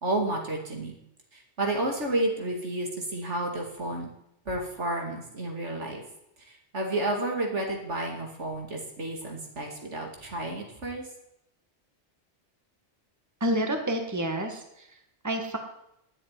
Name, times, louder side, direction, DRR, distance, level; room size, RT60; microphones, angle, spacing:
voice 1, 0.0-0.9 1.3-4.1 4.5-6.0 6.4-11.0, right 1 dB, 80° right, 1 dB, 2.8 m, -31 dB
voice 2, 13.4-15.0 15.2-15.6, right 1 dB, 15° right, 4 dB, 1.6 m, -29 dB
10.5 x 7.8 x 9.7 m, 0.80 s
omnidirectional pair, 1.2 m